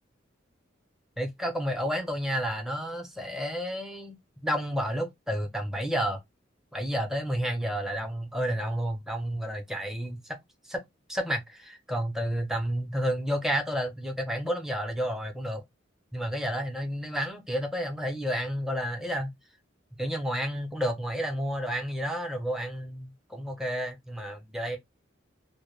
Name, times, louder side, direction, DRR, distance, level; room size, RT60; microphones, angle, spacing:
voice 1, 1.2-4.2 4.4-6.2 6.7-10.4 10.7-10.8 11.1-15.6 16.1-19.3 20.0-24.8, equal, ahead, 0.5 m, -31 dB
2.2 x 2.1 x 3.0 m
head